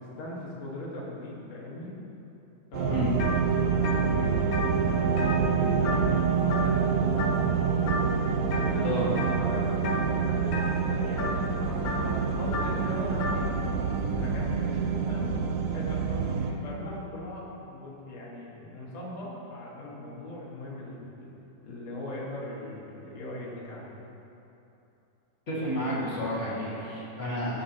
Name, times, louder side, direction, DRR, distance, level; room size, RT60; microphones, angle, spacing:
voice 1, 0.0-2.0 2.7-3.1 3.4-7.4 8.5-8.9 9.4-11.3 11.7-15.4 15.7-21.3 21.6-24.0, left 1 dB, 65° left, -5 dB, 2.6 m, -40 dB
sound 1, 2.7-16.5, right 6 dB, 90° right, 1.3 m, -27 dB
sound 2, 3.2-3.4 3.7-6.2 6.5-6.9 7.2-7.5 7.9-8.7 9.2-9.5 9.8-13.4, left 2 dB, 85° left, 1.0 m, -33 dB
voice 2, 25.5-27.6, equal, 30° left, -8 dB, 1.5 m, -31 dB
16.0 x 5.4 x 2.9 m, 2.9 s
omnidirectional pair, 3.4 m